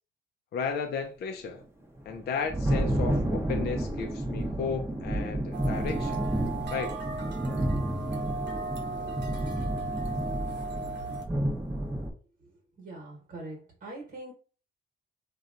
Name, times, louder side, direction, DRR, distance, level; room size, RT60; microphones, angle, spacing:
voice 1, 0.5-1.6 2.1-6.2 6.7-6.9, left 6 dB, 55° left, 0.5 m, -34 dB
Thunder, 2.0-12.1, right 1 dB, 10° right, 0.7 m, -30 dB
sound 1, 5.5-11.2, right 3 dB, 60° right, 0.8 m, -37 dB
voice 2, 12.8-14.3, right 2 dB, 45° right, 1.1 m, -42 dB
2.8 x 2.3 x 2.5 m
cardioid pair, 90°, 20 cm